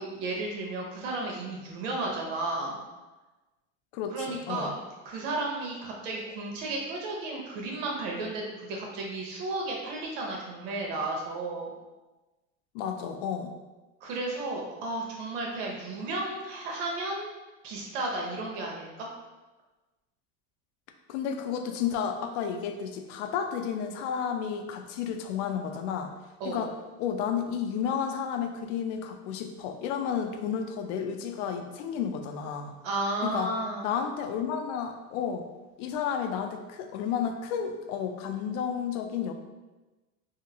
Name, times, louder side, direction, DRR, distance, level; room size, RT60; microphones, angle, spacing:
voice 1, 0.0-2.8 4.1-4.8 5.0-11.7 14.0-17.3 17.6-19.1 26.4-26.6 32.8-33.9, right 2 dB, 85° right, -1 dB, 0.9 m, -33 dB
voice 2, 3.9-4.7 12.7-13.5 21.1-26.1 26.4-26.7 27.0-32.7 33.2-33.5 33.8-35.4 35.8-39.3, left 7 dB, 75° left, 6 dB, 0.5 m, -32 dB
2.8 x 2.5 x 2.7 m, 1.1 s
supercardioid pair, 125°, 37 cm